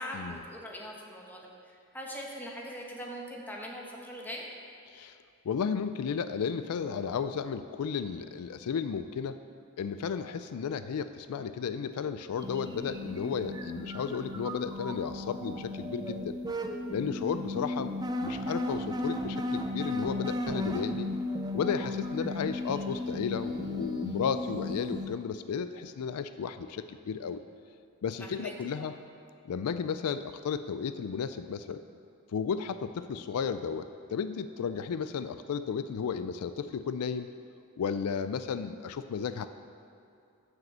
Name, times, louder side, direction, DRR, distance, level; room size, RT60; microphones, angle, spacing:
voice 1, 0.0-4.5 28.2-28.5 28.8-28.9, equal, 10° left, -2 dB, 1.1 m, -41 dB
voice 2, 5.4-9.4 9.8-16.4 16.9-17.9 18.2-21.1 21.5-27.4 28.0-28.9 29.5-31.8 32.3-37.3 37.8-39.5, left 6 dB, 80° left, 11 dB, 0.4 m, -33 dB
sound 1, 12.4-25.1, left 1 dB, 20° right, 0.5 m, -35 dB
7.5 x 6.2 x 7.3 m, 2.6 s
head